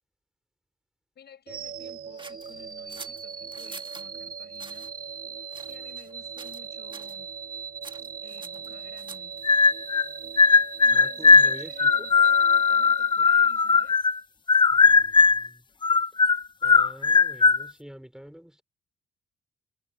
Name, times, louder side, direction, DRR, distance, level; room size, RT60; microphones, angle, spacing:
voice 1, 1.2-4.9 5.7-7.3 8.0-9.5 10.8-14.0, left 8 dB, 55° left, 7.4 m, -53 dB
sound 1, 1.5-13.6, right 6 dB, 45° right, 4.8 m, -39 dB
cutting paper, 2.2-4.1 4.5-4.9 5.5-6.1 6.4-6.7 6.9-7.2 7.8-9.4, right 3 dB, 25° right, 1.5 m, -45 dB
sound 2, 9.4-10.1 10.4-14.2 14.5-15.5 15.8-17.6, left 4 dB, 25° left, 0.5 m, -18 dB
voice 2, 10.9-12.1 14.7-15.6 16.6-18.6, equal, 5° right, 5.0 m, -46 dB
cardioid pair, 90°, 20 cm